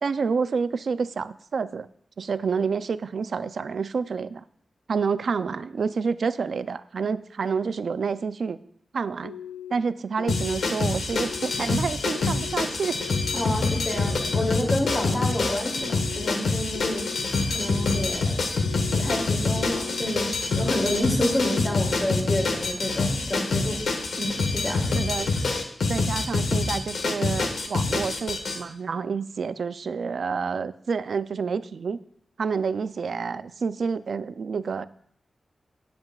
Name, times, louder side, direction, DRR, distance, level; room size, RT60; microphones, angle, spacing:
voice 1, 0.0-1.9 2.2-4.4 4.9-8.6 8.9-9.4 9.7-13.0 24.9-25.3 25.9-32.0 32.4-34.8, right 5 dB, 65° right, 13 dB, 0.4 m, -28 dB
sound 1, 9.2-9.7 10.2-10.7 11.1-11.6 12.1-12.5 13.0-13.5 13.9-14.4 14.9-15.4 15.8-16.3 16.8-17.2 17.7-18.2 18.6-19.1 19.6-20.1 20.5-21.0 21.4-21.9, left 9 dB, 65° left, 0.4 m, -39 dB
sound 2, 10.3-28.6, left 3 dB, 90° left, 1.2 m, -26 dB
voice 2, 13.3-17.1 17.5-18.3 18.9-20.3 20.6-23.8 24.2-24.9, left 1 dB, 20° left, -1 dB, 2.7 m, -29 dB
17.5 x 7.7 x 2.4 m, 0.67 s
wide cardioid pair, 160°, 0 cm